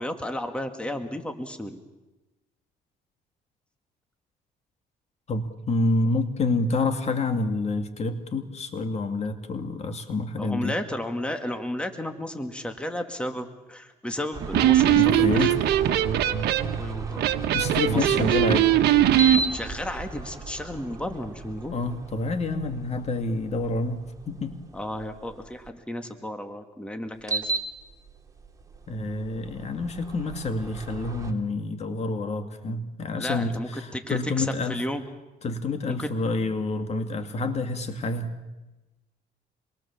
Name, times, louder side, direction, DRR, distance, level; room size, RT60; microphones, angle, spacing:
voice 1, 0.0-1.8 10.4-15.5 16.8-17.3 17.9-18.2 19.5-21.8 24.7-27.5 33.2-35.0 35.9-36.1, left 1 dB, 5° left, 6 dB, 2.1 m, -33 dB
voice 2, 5.3-10.7 15.0-15.6 17.5-18.7 21.7-24.6 28.9-34.8 35.4-38.3, left 3 dB, 40° left, 7 dB, 2.2 m, -28 dB
sound 1, 14.3-25.7 27.1-31.3, right 3 dB, 20° right, 3.0 m, -36 dB
Electric guitar, 14.4-19.4, right 12 dB, 75° right, 1.5 m, -21 dB
27.0 x 22.5 x 7.3 m, 1.1 s
cardioid pair, 110°, 17 cm